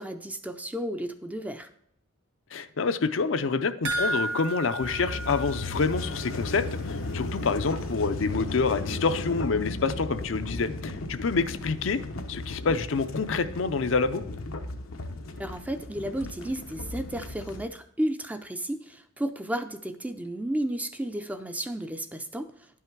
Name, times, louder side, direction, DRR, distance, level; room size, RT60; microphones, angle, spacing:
voice 1, 0.0-1.7 15.4-22.5, right 1 dB, 5° right, 8 dB, 0.4 m, -33 dB
voice 2, 2.5-12.0 12.3-14.2, left 4 dB, 65° left, 10 dB, 0.5 m, -27 dB
sound 1, 3.8-6.4 6.7-6.8 7.2-7.3, right 1 dB, 60° right, 1.4 m, -32 dB
sound 2, 4.8-17.7, left 2 dB, 90° left, 0.9 m, -35 dB
10.5 x 5.6 x 4.6 m, 0.71 s
head